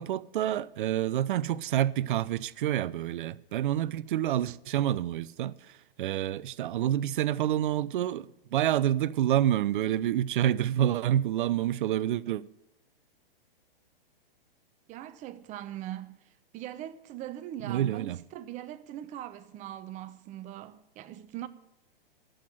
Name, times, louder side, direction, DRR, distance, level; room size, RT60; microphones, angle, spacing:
voice 1, 0.0-12.4 17.6-18.2, right 11 dB, 55° right, 0.6 m, -28 dB
voice 2, 14.9-16.1 16.5-21.5, right 12 dB, 25° right, 0.8 m, -41 dB
11.5 x 8.0 x 9.0 m
hypercardioid pair, 125°, 30 cm